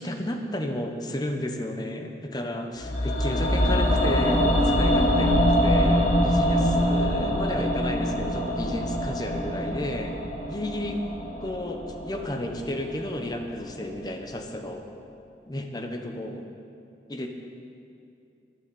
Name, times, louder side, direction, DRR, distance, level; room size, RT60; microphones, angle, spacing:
voice 1, 0.0-10.2 10.5-11.0 11.4-14.9 15.5-16.5 17.1-17.3, left 1 dB, 25° left, 4 dB, 1.0 m, -32 dB
sound 1, 2.8-12.9 13.2-13.3, equal, 50° left, 2.7 m, -24 dB
12.0 x 10.5 x 7.0 m, 2.6 s
head